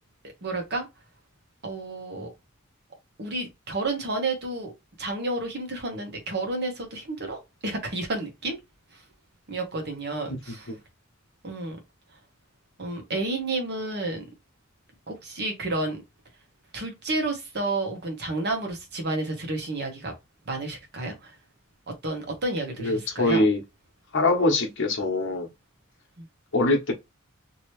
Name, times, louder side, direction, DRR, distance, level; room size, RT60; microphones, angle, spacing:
voice 1, 0.4-0.9 1.6-2.3 3.2-4.7 5.0-8.6 9.5-10.7 11.4-11.8 12.8-14.2 15.1-16.0 16.7-20.1 20.5-21.3 22.0-23.4 26.2-26.3, right 2 dB, 55° right, 1.1 m, -31 dB
voice 2, 22.8-23.6 24.1-25.5 26.5-26.9, left 2 dB, 60° left, 1.0 m, -23 dB
2.9 x 2.8 x 3.1 m
head